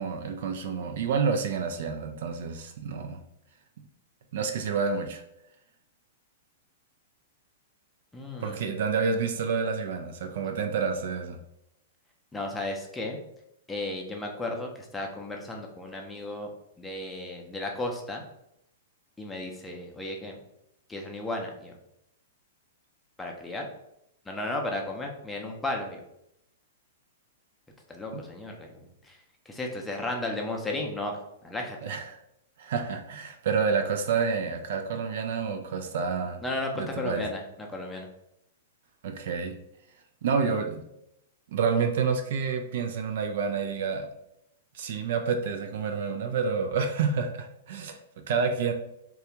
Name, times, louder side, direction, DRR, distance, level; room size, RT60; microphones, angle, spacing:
voice 1, 0.0-3.2 4.3-5.2 8.4-11.4 28.1-28.2 31.8-32.2 32.6-36.4 36.8-37.2 39.0-39.6 40.2-40.8 41.5-44.1 44.7-48.7, right 5 dB, 55° right, 5 dB, 0.3 m, -29 dB
voice 2, 8.1-8.7 12.3-13.2 13.7-16.5 16.8-18.2 19.2-20.4 20.9-21.7 23.2-23.7 24.3-26.0 27.9-28.7 29.0-29.2 29.5-31.1 31.4-31.8 36.4-38.1, left 2 dB, 10° left, 0 dB, 0.6 m, -34 dB
3.2 x 2.3 x 2.9 m, 0.80 s
figure-of-eight pair, 105°, 0 cm